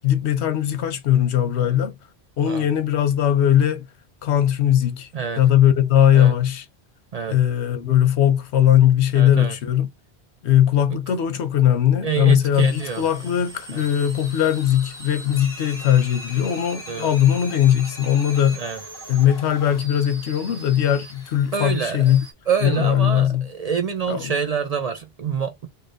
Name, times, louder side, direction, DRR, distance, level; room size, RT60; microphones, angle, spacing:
voice 1, 0.0-2.0 2.4-3.9 4.2-5.1 5.4-6.6 7.3-9.9 10.4-18.6 19.1-22.2 22.6-23.4 24.1-24.3, left 10 dB, 85° left, 1.0 m, -19 dB
voice 2, 9.1-9.5 10.9-11.0 12.0-13.0 13.7-13.8 16.9-17.1 18.5-18.8 21.5-22.2 22.5-25.7, right 6 dB, 50° right, 0.4 m, -26 dB
sound 1, 12.5-22.3, equal, 5° left, 1.7 m, -39 dB
3.2 x 2.7 x 2.5 m
omnidirectional pair, 1.1 m